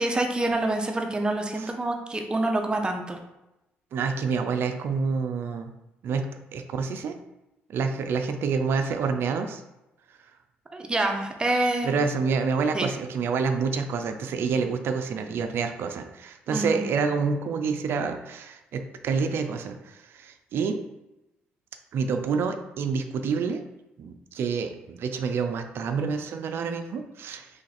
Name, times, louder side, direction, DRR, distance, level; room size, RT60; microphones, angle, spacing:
voice 1, 0.0-3.2 10.7-11.9 12.7-12.9 16.5-16.8, right 2 dB, 20° right, 3 dB, 0.6 m, -26 dB
voice 2, 3.9-5.7 6.0-7.2 7.7-9.6 11.8-20.8 21.9-23.6 24.0-27.5, right 5 dB, 65° right, 7 dB, 0.4 m, -28 dB
3.1 x 2.5 x 4.1 m, 0.94 s
cardioid pair, 80°, 4 cm